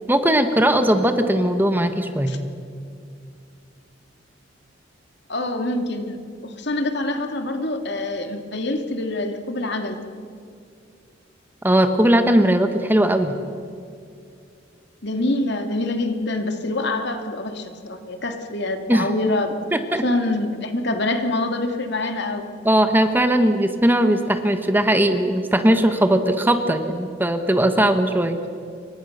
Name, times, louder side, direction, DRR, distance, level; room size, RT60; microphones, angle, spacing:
voice 1, 0.1-2.3 11.6-13.3 18.9-19.1 19.7-20.0 22.6-28.4, right 1 dB, 10° right, 7 dB, 1.3 m, -19 dB
voice 2, 5.3-6.2 6.4-10.0 15.0-19.6 20.0-22.5, left 2 dB, 60° left, 5 dB, 2.5 m, -25 dB
28.5 x 24.5 x 6.7 m, 2.4 s
head